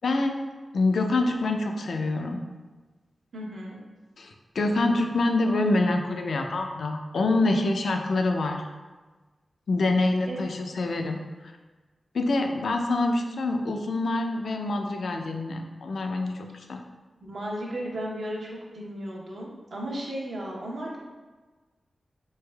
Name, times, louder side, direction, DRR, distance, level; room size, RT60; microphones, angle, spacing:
voice 1, 0.0-0.4 0.7-2.4 4.2-8.6 9.7-11.2 12.1-16.8, left 2 dB, 80° left, 4 dB, 0.3 m, -26 dB
voice 2, 3.3-3.8 10.3-10.4 17.2-21.0, equal, 75° right, -4 dB, 0.7 m, -35 dB
3.2 x 3.2 x 2.2 m, 1.3 s
cardioid pair, 50°, 0 cm